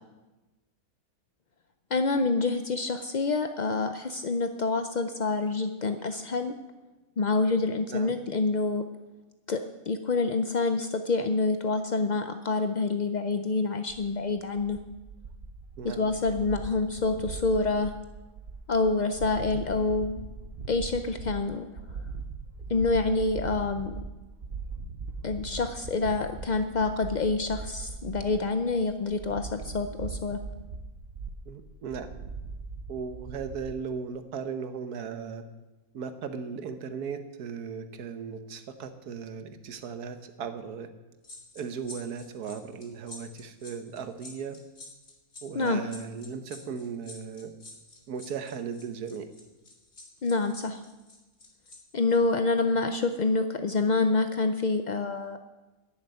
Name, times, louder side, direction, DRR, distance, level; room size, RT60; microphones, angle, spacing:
voice 1, 1.9-6.5 7.2-8.8 9.5-14.8 15.8-17.9 18.7-20.2 20.7-21.7 22.7-23.9 25.2-30.4 45.5-45.8 50.2-50.8 51.9-55.4, left 3 dB, 70° left, 8 dB, 0.4 m, -27 dB
sound 1, 13.9-33.7, right 4 dB, 50° right, 0.9 m, -40 dB
voice 2, 31.5-32.1 32.9-35.4 35.9-40.9 41.5-44.6 45.4-47.5 48.1-49.3, right 6 dB, 75° right, 9 dB, 1.5 m, -37 dB
sound 2, 41.2-51.8 52.1-52.3, left 2 dB, 45° left, 2.3 m, -48 dB
11.5 x 7.3 x 9.2 m, 1.1 s
omnidirectional pair, 1.6 m